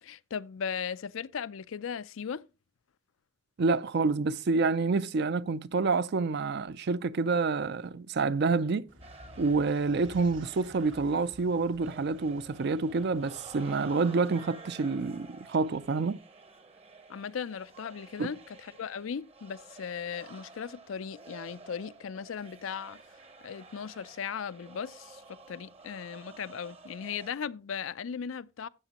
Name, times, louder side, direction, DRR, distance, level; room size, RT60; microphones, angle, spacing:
voice 1, 0.0-2.4 17.1-23.0 23.4-28.7, left 7 dB, 85° left, 0.5 m, -37 dB
voice 2, 3.6-8.9 9.4-16.2 18.2-18.3, right 4 dB, 55° right, 0.5 m, -28 dB
sound 1, 8.9-13.9, equal, 85° right, 2.2 m, -52 dB
sound 2, 9.0-27.3, right 3 dB, 30° right, 0.9 m, -51 dB
13.0 x 8.0 x 2.9 m
head